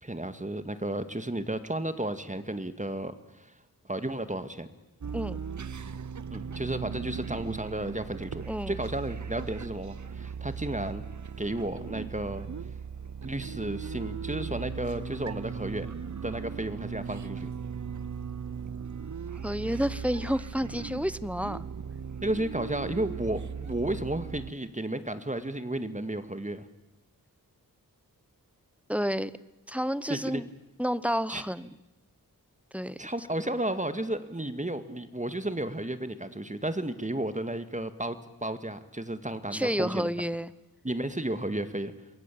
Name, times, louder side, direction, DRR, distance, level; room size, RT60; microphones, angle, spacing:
voice 1, 0.0-3.5 3.9-4.7 6.3-11.0 11.4-12.5 13.2-15.9 16.2-17.5 22.2-26.7 30.1-30.4 31.3-31.4 33.0-40.1 40.8-41.9, right 1 dB, 20° right, 11 dB, 2.0 m, -33 dB
sound 1, 5.0-24.5, right 6 dB, 55° right, 0.9 m, -38 dB
voice 2, 19.4-21.6 28.9-29.3 29.7-30.5 30.8-31.7 32.7-33.0 39.5-40.5, equal, 5° right, 17 dB, 1.0 m, -30 dB
28.0 x 22.0 x 8.6 m, 0.97 s
wide cardioid pair, 55°, 35 cm